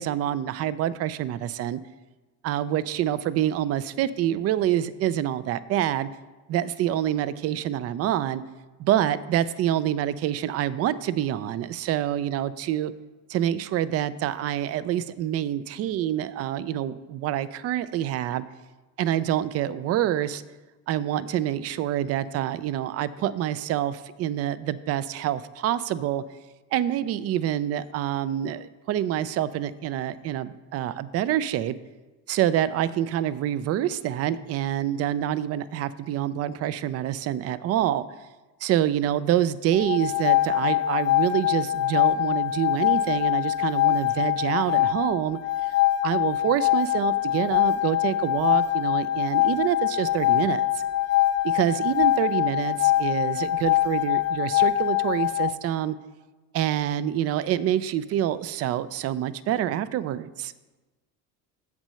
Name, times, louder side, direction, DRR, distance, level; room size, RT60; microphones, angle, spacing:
voice 1, 0.0-1.8 2.4-6.1 6.5-8.4 8.8-12.9 13.3-18.4 19.0-20.4 20.9-26.2 26.7-31.7 32.3-38.0 38.6-45.4 46.0-50.8 51.4-56.0 56.5-60.5, right 11 dB, 40° right, 17 dB, 0.4 m, -26 dB
sound 1, 39.7-55.5, left 14 dB, 45° left, 0.6 m, -23 dB
7.4 x 6.0 x 5.5 m, 1.2 s
cardioid pair, 120°, 37 cm